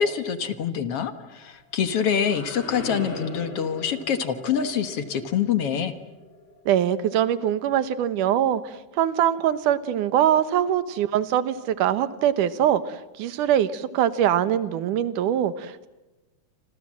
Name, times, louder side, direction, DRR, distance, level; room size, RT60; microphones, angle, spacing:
voice 1, 0.0-5.9, left 7 dB, 55° left, 10 dB, 2.2 m, -25 dB
sound 1, 1.5-7.3, left 1 dB, 40° left, 4.9 m, -40 dB
voice 2, 6.7-15.9, right 10 dB, 90° right, 14 dB, 2.7 m, -23 dB
28.5 x 26.5 x 7.5 m, 1.1 s
omnidirectional pair, 3.5 m